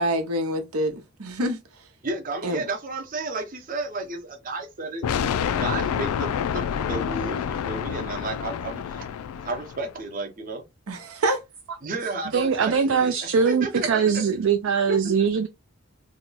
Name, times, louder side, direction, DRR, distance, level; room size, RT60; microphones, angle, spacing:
voice 1, 0.0-1.6 2.4-2.6 10.9-11.4, right 1 dB, 85° right, 0.8 m, -26 dB
voice 2, 2.0-5.3 5.6-9.1 9.4-10.6 11.8-14.2 14.8-15.3, right 3 dB, 40° right, 0.7 m, -33 dB
sound 1, 5.0-9.9, left 8 dB, 80° left, 0.3 m, -28 dB
voice 3, 12.3-15.5, right 6 dB, 60° right, 0.4 m, -22 dB
2.8 x 2.2 x 3.9 m
head